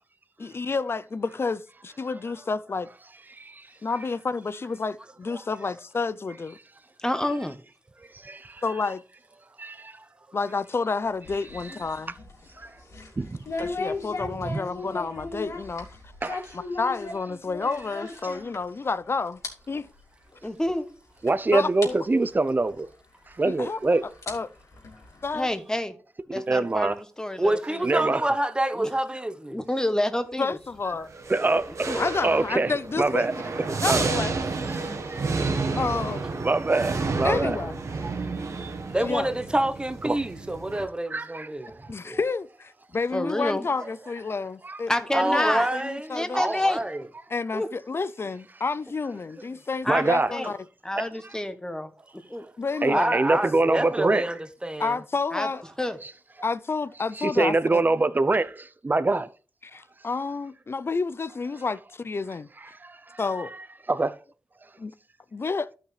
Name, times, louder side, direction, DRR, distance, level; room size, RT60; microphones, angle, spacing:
voice 1, 0.4-2.9 3.8-6.6 8.6-9.0 10.3-12.1 13.6-15.9 16.5-19.4 19.7-19.9 21.5-22.0 23.4-23.8 24.3-24.5 25.2-25.5 30.4-31.1 31.9-33.3 33.8-34.4 35.8-36.2 37.2-37.8 39.0-39.3 41.9-46.4 47.3-50.6 52.6-53.2 54.8-55.6 56.4-57.8 59.6-62.5 63.2-63.5 64.8-65.0 65.3-65.7, left 4 dB, 50° left, 0.5 m, -30 dB
voice 2, 3.3-3.7 8.1-8.6 9.6-10.0 12.6-12.7 13.2-13.4 14.4-14.6 16.2-16.5 21.2-22.9 23.4-24.0 26.3-27.0 27.8-28.2 31.3-31.7 32.2-33.3 33.8-34.0 34.7-35.8 36.4-37.6 38.0-38.1 38.5-38.7 40.0-40.2 41.1-41.9 44.6-44.8 49.9-50.3 51.0-51.1 52.8-54.3 56.0-56.1 57.2-59.3 62.8-63.2 63.9-64.2, right 2 dB, 40° right, 0.7 m, -25 dB
voice 3, 7.0-7.6 20.4-20.9 25.3-25.9 26.3-27.8 28.7-28.9 29.5-30.6 31.9-32.0 43.1-43.6 44.9-45.7 46.1-46.8 47.5-47.7 49.8-50.0 50.3-50.5 50.8-51.9 52.3-52.5 55.3-55.5 55.8-56.0, left 1 dB, 15° left, 1.1 m, -28 dB
sound 1, 11.0-19.0 19.2-19.5 19.8-20.0 20.7-20.8 21.3-21.4 21.8-21.9 23.3-23.4 24.0-25.5, left 3 dB, 80° left, 2.9 m, -37 dB
voice 4, 27.4-29.6 38.9-42.2 45.1-47.1 52.9-54.9, right 1 dB, 20° right, 1.0 m, -27 dB
sound 2, 31.1-40.8, right 3 dB, 80° right, 1.5 m, -30 dB
12.5 x 5.9 x 3.3 m
cardioid pair, 55°, 5 cm